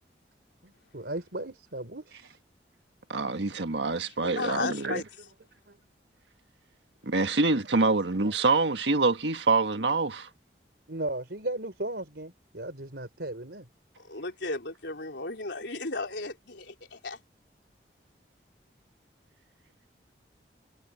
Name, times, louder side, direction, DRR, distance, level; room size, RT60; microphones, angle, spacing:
voice 1, 0.6-2.4 5.7-5.8 10.9-13.7, right 1 dB, 70° right, 3.7 m, -36 dB
voice 2, 3.1-5.0 7.0-10.3, right 3 dB, 85° right, 1.5 m, -26 dB
voice 3, 4.1-5.0 14.0-17.2, left 3 dB, 85° left, 3.9 m, -35 dB
head